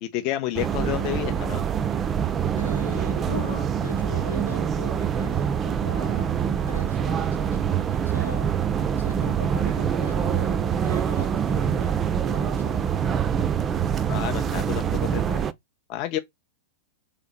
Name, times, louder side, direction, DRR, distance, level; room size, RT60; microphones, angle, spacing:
voice 1, 0.0-1.7 14.1-15.4 15.9-16.2, left 13 dB, 40° left, 0.4 m, -30 dB
sound 1, 0.5-15.5, right 8 dB, 25° right, 0.3 m, -25 dB
voice 2, 2.5-6.4 6.7-8.7 9.0-13.0, left 2 dB, 85° left, 0.9 m, -40 dB
3.4 x 2.8 x 3.8 m
figure-of-eight pair, 95°, 0 cm